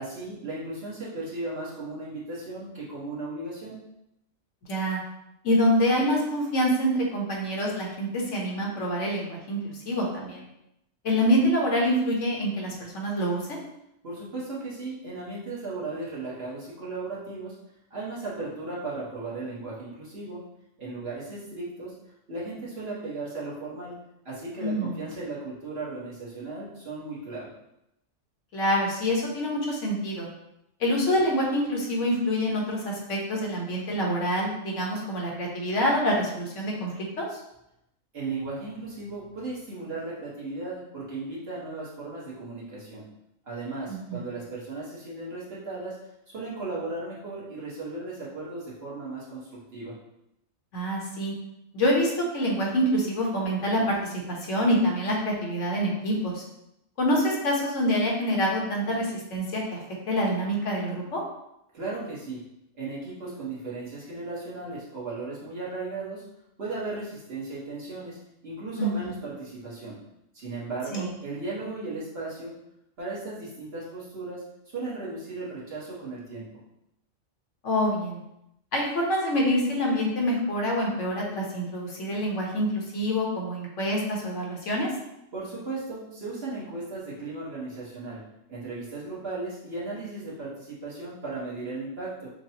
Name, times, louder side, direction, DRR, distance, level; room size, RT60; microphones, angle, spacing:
voice 1, 0.0-3.8 14.0-17.5 17.9-20.4 20.8-21.9 22.3-23.9 24.2-27.5 38.1-43.0 43.4-46.0 46.3-50.0 61.7-62.4 62.8-66.2 66.6-69.9 70.3-72.5 73.0-74.4 74.7-76.6 85.3-88.2 88.5-92.3, right 3 dB, 50° right, -7 dB, 1.4 m, -36 dB
voice 2, 4.7-5.0 5.4-10.4 11.0-13.6 24.6-25.0 28.5-30.3 30.8-36.9 37.2-37.3 43.9-44.2 50.7-51.3 51.7-56.4 57.0-59.8 60.1-61.2 68.8-69.1 70.9-71.1 77.6-78.2 78.7-84.9, equal, 70° left, -2 dB, 1.3 m, -26 dB
6.5 x 2.2 x 2.8 m, 0.83 s
omnidirectional pair, 1.4 m